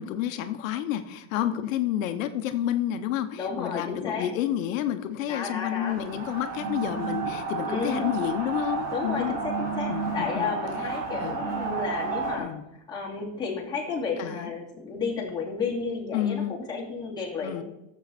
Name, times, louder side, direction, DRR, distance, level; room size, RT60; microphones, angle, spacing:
voice 1, 0.0-9.4 9.9-10.5 11.2-11.4 12.4-12.6 14.2-14.5 16.1-16.5 17.4-17.6, left 11 dB, 85° left, 8 dB, 1.0 m, -30 dB
voice 2, 3.4-4.3 5.3-6.0 7.7-8.1 8.9-17.6, left 4 dB, 10° left, -5 dB, 2.7 m, -32 dB
sound 1, 5.8-12.4, right 4 dB, 65° right, 2.6 m, -31 dB
14.0 x 7.3 x 4.2 m, 0.88 s
supercardioid pair, 165°, 39 cm